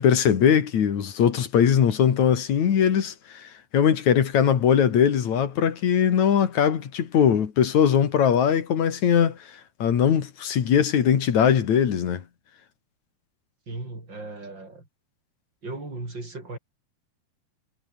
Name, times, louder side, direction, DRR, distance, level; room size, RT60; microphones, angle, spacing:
voice 1, 0.0-9.4 9.8-12.2, left 8 dB, 50° left, 3.1 m, -21 dB
voice 2, 13.7-14.9 15.6-16.6, right 2 dB, 25° right, 8.4 m, -36 dB
omnidirectional pair, 4.7 m